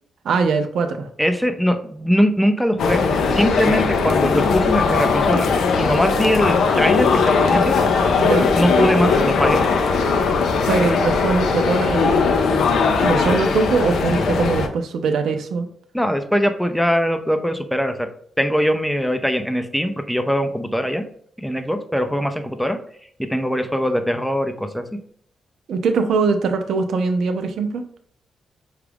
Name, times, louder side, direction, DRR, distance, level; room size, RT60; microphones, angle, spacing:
voice 1, 0.2-1.1 8.2-8.5 10.6-12.3 13.0-15.7 25.7-27.9, right 4 dB, 75° right, 7 dB, 0.5 m, -21 dB
voice 2, 1.2-3.0 3.3-5.5 5.8-7.7 8.6-9.6 15.9-18.1 18.4-21.0 21.4-22.8 23.3-24.8, equal, ahead, 7 dB, 0.5 m, -21 dB
sound 1, 2.8-14.7, left 4 dB, 80° left, 0.5 m, -19 dB
4.9 x 2.4 x 3.4 m, 0.62 s
cardioid pair, 85°, 0 cm